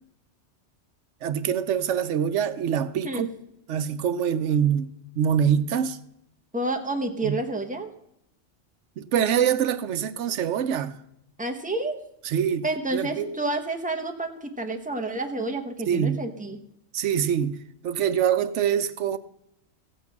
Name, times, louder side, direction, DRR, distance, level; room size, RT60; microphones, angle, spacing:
voice 1, 1.2-3.3 3.7-4.9 5.2-6.0 7.2-7.4 9.0-11.0 12.2-12.6 12.9-13.3 15.9-16.2 16.9-19.2, right 8 dB, 85° right, 1.0 m, -24 dB
voice 2, 6.5-7.9 11.4-12.0 12.6-16.6, right 2 dB, 5° right, 1.1 m, -29 dB
15.5 x 8.3 x 5.8 m
omnidirectional pair, 1.2 m